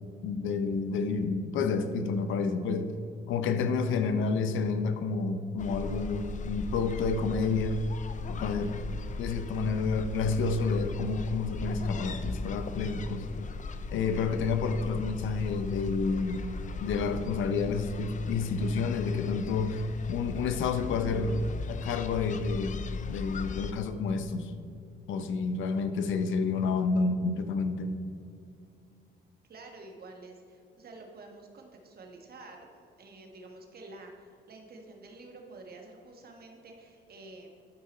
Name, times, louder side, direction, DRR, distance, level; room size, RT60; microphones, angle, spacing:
voice 1, 0.2-2.9 3.3-7.8 8.3-8.8 9.2-13.2 13.9-16.4 16.8-24.5 25.1-27.9, left 4 dB, 80° left, 9 dB, 0.7 m, -29 dB
sound 1, 5.6-23.7, left 3 dB, 40° left, 0.5 m, -38 dB
voice 2, 29.5-32.7 33.0-37.5, right 2 dB, 50° right, 2 dB, 1.5 m, -49 dB
12.0 x 4.8 x 4.3 m, 2.5 s
cardioid pair, 90°, 20 cm